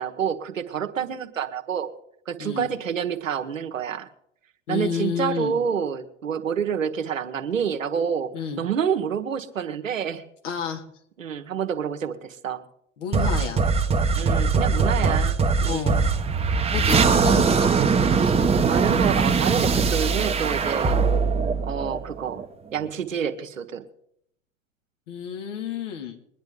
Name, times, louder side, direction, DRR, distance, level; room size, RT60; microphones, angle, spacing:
voice 1, 0.0-1.9 2.3-4.1 4.7-8.3 8.6-10.2 11.2-12.6 14.1-16.0 16.7-17.0 18.2-18.3 18.7-21.0 21.6-22.4 22.7-23.8, right 7 dB, 75° right, 8 dB, 1.4 m, -28 dB
voice 2, 4.7-5.5 8.3-8.6 10.4-10.8 13.0-13.6 14.9-15.2 15.6-16.0 16.7-17.7 25.1-26.2, left 7 dB, 65° left, 3 dB, 2.7 m, -30 dB
sound 1, 13.1-22.4, right 5 dB, 15° right, 1.2 m, -21 dB
22.5 x 10.5 x 3.8 m, 0.72 s
figure-of-eight pair, 90°, 39 cm